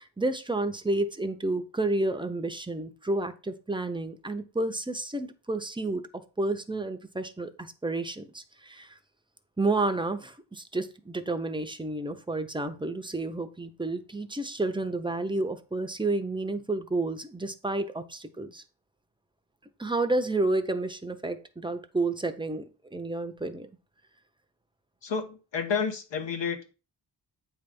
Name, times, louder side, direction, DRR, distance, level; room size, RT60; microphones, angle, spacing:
voice 1, 0.0-9.0 9.6-18.6 19.8-23.7, right 2 dB, 10° right, 7 dB, 0.7 m, -30 dB
voice 2, 25.0-26.7, left 6 dB, 75° left, 5 dB, 1.4 m, -30 dB
8.8 x 3.4 x 5.2 m, 0.32 s
wide cardioid pair, 160°, 43 cm